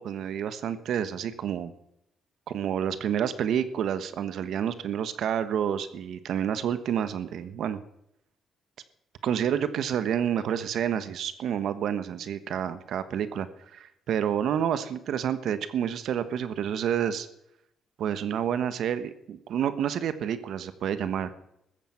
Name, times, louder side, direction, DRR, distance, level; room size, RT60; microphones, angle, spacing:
voice 1, 0.0-1.7 2.5-7.8 9.2-13.5 13.7-17.3 18.0-21.3, right 9 dB, 70° right, 12 dB, 1.3 m, -29 dB
14.0 x 14.0 x 5.9 m, 0.78 s
cardioid pair, 90°, 0 cm